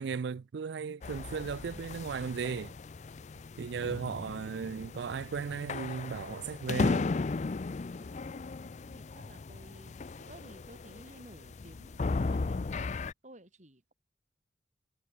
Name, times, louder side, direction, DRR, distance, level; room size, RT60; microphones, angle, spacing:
voice 1, 0.0-2.7 3.6-7.1, right 6 dB, 65° right, 0.4 m, -36 dB
sound 1, 1.0-13.1, left 3 dB, 40° left, 0.4 m, -36 dB
voice 2, 8.0-13.9, right 1 dB, 40° right, 5.5 m, -55 dB
head